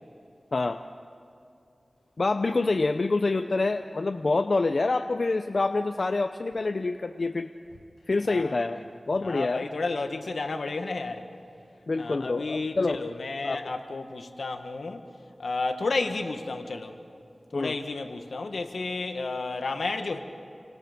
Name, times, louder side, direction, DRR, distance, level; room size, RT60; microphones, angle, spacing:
voice 1, 0.5-0.8 2.2-7.5 8.1-8.8 9.1-9.7 11.9-13.0 13.4-13.7 17.5-17.8, left 3 dB, 65° left, 8 dB, 0.7 m, -26 dB
voice 2, 8.3-8.6 9.2-11.2 12.0-15.1 15.4-16.9 17.5-20.2, left 3 dB, 85° left, 6 dB, 1.6 m, -32 dB
29.0 x 25.0 x 5.2 m, 2.6 s
wide cardioid pair, 50°, 0 cm